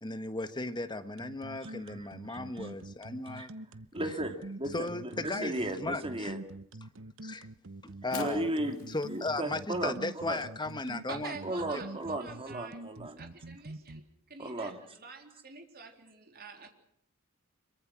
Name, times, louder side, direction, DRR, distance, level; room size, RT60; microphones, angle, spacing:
voice 1, 0.0-3.5 4.7-5.5 5.8-6.3 7.2-7.5 8.0-8.5 8.9-11.3, left 2 dB, 20° left, 10 dB, 1.4 m, -36 dB
sound 1, 1.2-14.0, right 2 dB, 65° right, 1.0 m, -45 dB
voice 2, 1.6-2.7 3.3-3.5 3.9-6.4 8.1-8.8 9.1-10.4 11.4-13.2 14.4-14.8, right 1 dB, 25° right, 5 dB, 2.8 m, -36 dB
Fire, 7.8-14.0, left 8 dB, 70° left, 4.1 m, -53 dB
voice 3, 11.1-12.8 13.2-16.7, right 4 dB, 45° right, 4 dB, 3.7 m, -47 dB
25.5 x 23.0 x 6.2 m, 0.69 s
head